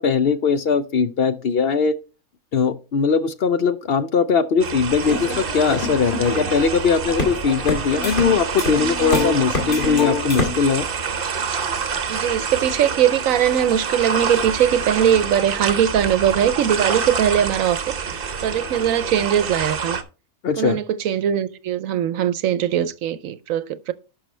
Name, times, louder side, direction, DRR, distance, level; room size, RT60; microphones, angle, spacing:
voice 1, 0.0-1.9 2.5-10.9 20.4-20.8, left 5 dB, 60° left, 0.6 m, -20 dB
sound 1, 4.6-20.0, right 6 dB, 45° right, 0.9 m, -27 dB
sound 2, 4.9-10.5, left 3 dB, 35° left, 2.1 m, -26 dB
voice 2, 12.1-20.0 20.6-23.9, right 9 dB, 70° right, 1.0 m, -20 dB
11.5 x 5.5 x 3.2 m
omnidirectional pair, 1.5 m